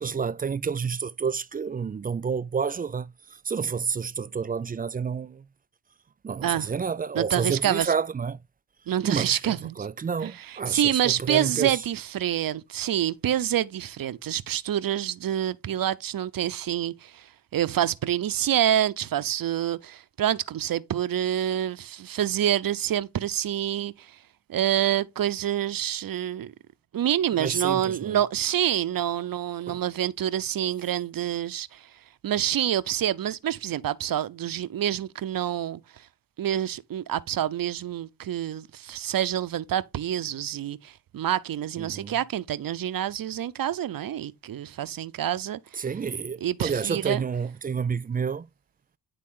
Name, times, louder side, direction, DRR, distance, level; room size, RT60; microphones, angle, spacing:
voice 1, 0.0-3.1 3.5-5.4 6.2-8.4 9.0-11.7 27.3-28.2 29.7-29.8 41.8-42.2 45.8-48.5, right 6 dB, 25° right, 0.3 m, -29 dB
voice 2, 7.1-7.9 8.9-9.9 10.2-17.3 17.5-24.1 24.5-26.5 26.9-31.9 32.2-35.8 36.4-45.9 46.4-47.2, right 11 dB, 55° right, 0.7 m, -27 dB
10.0 x 3.7 x 3.7 m
cardioid pair, 60°, 40 cm